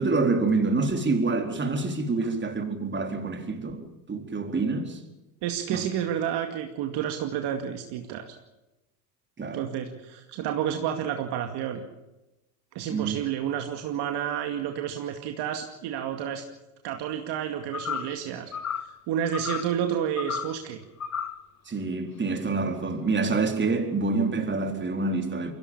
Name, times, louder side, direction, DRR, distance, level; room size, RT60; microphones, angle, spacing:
voice 1, 0.0-3.8 4.1-5.0 5.7-5.8 9.4-9.6 12.9-13.2 21.7-25.5, right 3 dB, 25° right, 4.2 m, -27 dB
voice 2, 5.4-8.4 9.5-11.8 12.7-16.4 16.8-18.5 19.1-20.8, right 9 dB, 60° right, 2.4 m, -30 dB
sound 1, 17.7-18.2 18.5-19.0 19.3-19.7 20.2-20.6 21.0-21.4, left 7 dB, 35° left, 1.7 m, -33 dB
23.5 x 17.0 x 7.2 m
hypercardioid pair, 75°, 47 cm